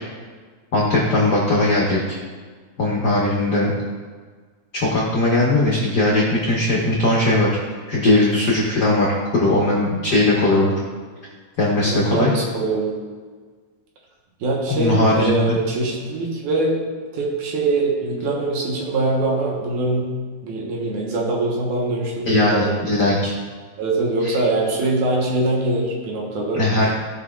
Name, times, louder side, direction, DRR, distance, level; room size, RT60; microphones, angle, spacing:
voice 1, 0.7-2.0 2.8-3.7 4.7-7.5 7.9-10.7 11.6-12.3 14.7-15.6 22.3-23.3 24.2-24.3 26.5-26.9, left 2 dB, 75° left, -4 dB, 0.9 m, -19 dB
voice 2, 11.8-12.9 14.4-16.8 17.1-20.1 20.4-22.7 23.8-26.6, right 2 dB, 80° right, -2 dB, 2.7 m, -23 dB
15.0 x 5.5 x 2.4 m, 1.5 s
omnidirectional pair, 3.5 m